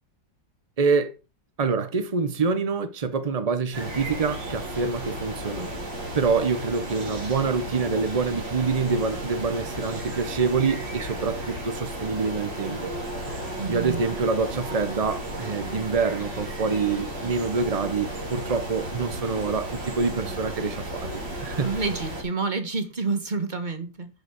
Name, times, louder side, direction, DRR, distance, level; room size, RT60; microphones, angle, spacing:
voice 1, 0.8-1.1 1.6-5.7 6.1-12.9 13.3-13.4 13.7-21.8, right 4 dB, 70° right, 0.3 m, -26 dB
sound 1, 3.7-22.2, right 1 dB, 90° right, 4.0 m, -34 dB
voice 2, 13.6-14.0 21.6-24.1, right 4 dB, 25° right, 1.4 m, -28 dB
10.5 x 5.2 x 6.3 m
omnidirectional pair, 2.0 m